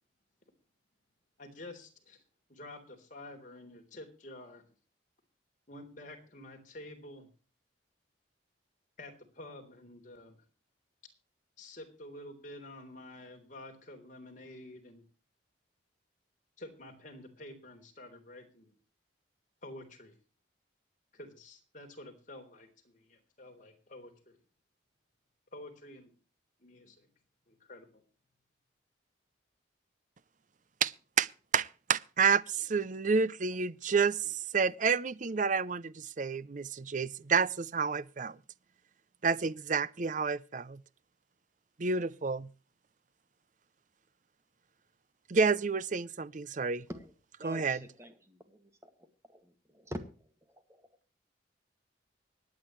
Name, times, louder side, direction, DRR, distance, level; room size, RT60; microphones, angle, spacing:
voice 1, 1.4-2.2 2.5-4.6 5.7-7.3 9.0-10.4 11.6-15.0 16.6-18.7 19.6-20.2 21.1-24.4 25.5-26.1 26.6-27.1 27.5-28.0, left 1 dB, 45° left, 3.6 m, -49 dB
voice 2, 30.8-38.4 39.2-40.8 41.8-42.5 45.3-46.9 47.4-47.9, right 5 dB, 40° right, 0.6 m, -30 dB
voice 3, 47.4-48.7 49.3-50.1, equal, 15° right, 2.0 m, -45 dB
25.0 x 9.5 x 3.1 m
head